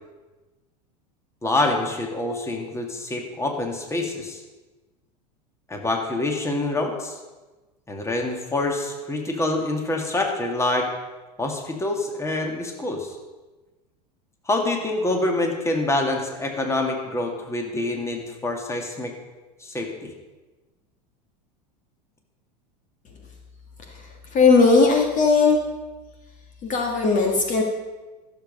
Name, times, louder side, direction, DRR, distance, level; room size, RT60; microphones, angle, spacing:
voice 1, 1.4-4.4 5.7-7.2 7.9-10.9 11.4-13.2 14.5-19.1 19.6-20.1, left 2 dB, 15° left, 2 dB, 2.1 m, -26 dB
voice 2, 24.3-25.6 26.6-27.6, left 4 dB, 35° left, 2 dB, 1.7 m, -18 dB
14.0 x 7.4 x 5.3 m, 1.2 s
hypercardioid pair, 95°, 21 cm